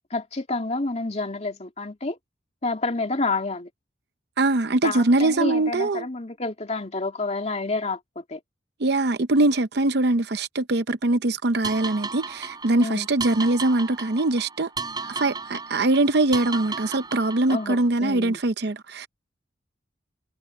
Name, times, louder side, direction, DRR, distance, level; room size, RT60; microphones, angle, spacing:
voice 1, 0.1-2.2 2.6-3.7 4.8-8.4 12.8-13.1 17.5-18.4, left 3 dB, 35° left, 2.5 m, -29 dB
voice 2, 4.4-6.1 8.8-14.7 15.0-19.1, right 2 dB, 60° right, 0.7 m, -22 dB
sound 1, 11.6-17.9, right 4 dB, 20° right, 7.3 m, -35 dB
head